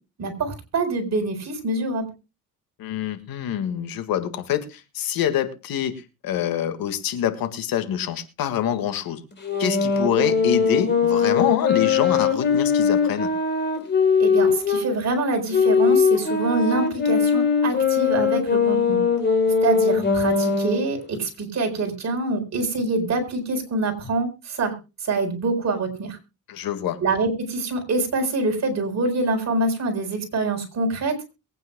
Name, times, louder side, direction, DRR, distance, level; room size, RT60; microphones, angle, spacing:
voice 1, 0.2-2.1 14.2-19.0 19.6-24.7 25.0-26.2 27.0-31.2, right 3 dB, 50° right, 3 dB, 4.4 m, -25 dB
voice 2, 2.8-5.9 6.2-9.2 9.6-13.3 26.5-27.0, left 10 dB, 75° left, 9 dB, 1.9 m, -25 dB
sound 1, 9.4-14.9 15.5-20.9, left 5 dB, 30° left, 3.9 m, -20 dB
22.5 x 9.2 x 2.2 m, 0.28 s
cardioid pair, 115°, 35 cm